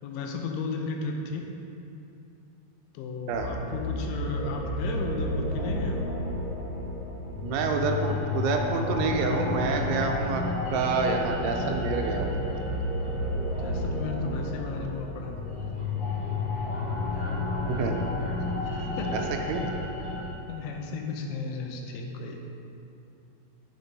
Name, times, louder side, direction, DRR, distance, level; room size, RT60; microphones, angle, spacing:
voice 1, 0.0-1.5 2.9-6.1 13.6-15.4 17.1-17.2 18.8-19.1 20.5-22.4, left 4 dB, 90° left, 2 dB, 3.3 m, -34 dB
sound 1, 3.3-20.3, left 2 dB, 70° left, 1.3 m, -31 dB
voice 2, 7.4-10.4 10.7-12.5 17.7-18.0 19.1-19.2 19.5-19.6, right 4 dB, 80° right, 3 dB, 3.0 m, -28 dB
11.0 x 5.2 x 5.3 m, 2.7 s
omnidirectional pair, 5.5 m